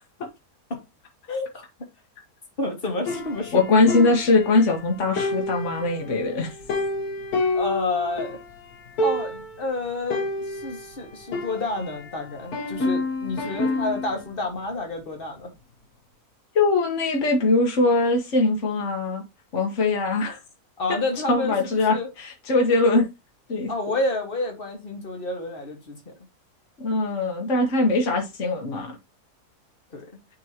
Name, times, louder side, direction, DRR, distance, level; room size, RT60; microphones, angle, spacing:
voice 1, 1.3-1.6 2.6-3.6 7.5-8.4 9.0-15.5 20.8-22.1 23.7-26.1 29.9-30.1, left 2 dB, 35° left, 1.8 m, -29 dB
sound 1, 3.1-4.8 5.2-8.4 8.7-8.8 9.0-9.6 10.1-12.1 12.5-14.2, left 2 dB, 70° left, 1.6 m, -29 dB
voice 2, 3.5-6.5 16.5-19.2 19.5-20.4 21.3-23.1 23.5-23.7 26.8-29.0, left 3 dB, 50° left, 1.5 m, -21 dB
9.3 x 3.8 x 2.9 m
omnidirectional pair, 1.6 m